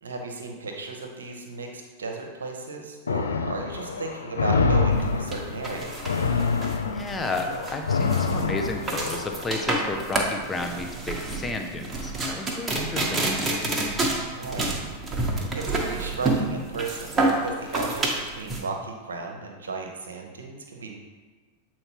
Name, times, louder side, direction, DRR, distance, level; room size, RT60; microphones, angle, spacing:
voice 1, 0.0-5.9 14.3-14.8 15.5-21.0, right 3 dB, 70° right, 2 dB, 0.9 m, -35 dB
sound 1, 3.1-9.5, left 4 dB, 70° left, 0.4 m, -26 dB
sound 2, 5.0-18.6, right 2 dB, 15° right, 1.1 m, -28 dB
voice 2, 6.9-13.3, left 2 dB, 15° left, 4 dB, 0.6 m, -32 dB
7.8 x 4.3 x 3.0 m, 1.3 s
figure-of-eight pair, 90°, 0 cm